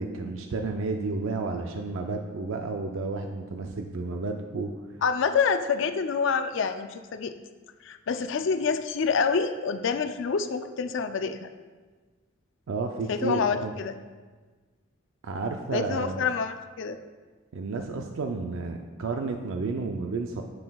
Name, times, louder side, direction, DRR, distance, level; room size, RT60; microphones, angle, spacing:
voice 1, 0.0-4.7 12.7-13.7 15.2-16.2 17.5-20.4, right 3 dB, 75° right, 4 dB, 0.4 m, -31 dB
voice 2, 5.0-7.3 7.8-11.5 13.1-14.0 15.7-17.0, left 5 dB, 60° left, 9 dB, 0.4 m, -27 dB
7.7 x 7.4 x 2.3 m, 1.4 s
head